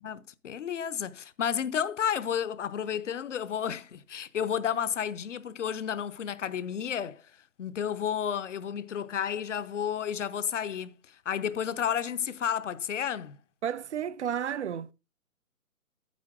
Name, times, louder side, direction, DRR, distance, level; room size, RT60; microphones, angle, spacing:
voice 1, 0.0-7.3 7.6-13.4, left 8 dB, 55° left, 0.9 m, -32 dB
voice 2, 13.6-14.9, right 9 dB, 50° right, 0.6 m, -32 dB
10.5 x 7.4 x 3.6 m
hypercardioid pair, 160°, 43 cm